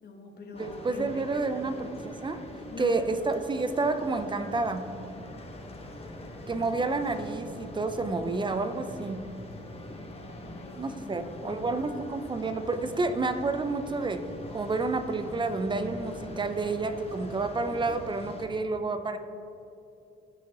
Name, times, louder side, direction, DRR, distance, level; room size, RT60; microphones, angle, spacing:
voice 1, 0.0-1.7 2.7-2.9 6.6-6.7 10.4-11.8, left 3 dB, 55° left, 2 dB, 1.5 m, -43 dB
sound 1, 0.5-18.5, left 1 dB, 30° left, 1.3 m, -43 dB
voice 2, 0.5-2.4 2.8-4.9 6.5-9.3 10.8-19.2, right 3 dB, 25° right, 9 dB, 0.7 m, -30 dB
14.5 x 5.8 x 3.0 m, 2.7 s
cardioid pair, 90°, 20 cm